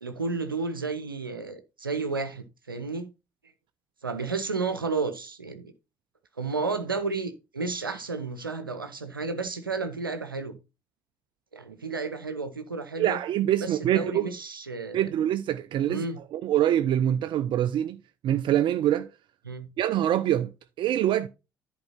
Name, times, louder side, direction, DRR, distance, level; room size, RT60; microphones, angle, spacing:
voice 1, 0.0-3.1 4.0-5.7 6.4-10.6 11.5-13.2 13.6-15.1 15.9-16.2 19.4-19.7, right 4 dB, 85° right, 0.8 m, -32 dB
voice 2, 13.0-14.3 14.9-16.0 16.3-18.0 18.2-19.1 19.8-20.5 20.8-21.3, right 11 dB, 45° right, 0.5 m, -24 dB
10.5 x 4.5 x 4.3 m
figure-of-eight pair, 55°, 11 cm